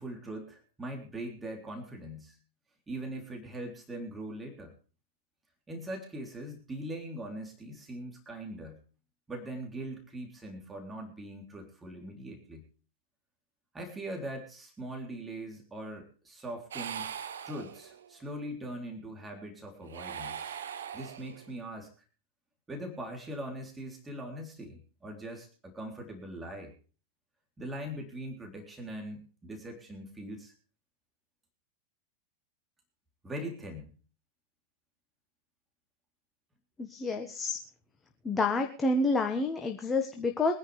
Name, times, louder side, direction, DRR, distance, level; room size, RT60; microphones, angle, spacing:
voice 1, 0.0-2.4 2.9-4.7 5.7-8.8 9.3-12.6 13.7-17.1 17.4-20.6 20.9-21.9 22.7-26.7 27.6-30.5 33.2-33.9, right 1 dB, 15° right, 2 dB, 3.7 m, -41 dB
sound 1, 16.7-18.2 19.8-21.6, right 8 dB, 65° right, 1.1 m, -41 dB
voice 2, 36.8-37.6 38.2-40.5, left 3 dB, 15° left, 4 dB, 1.7 m, -29 dB
24.0 x 10.5 x 3.5 m, 0.38 s
figure-of-eight pair, 90°, 0 cm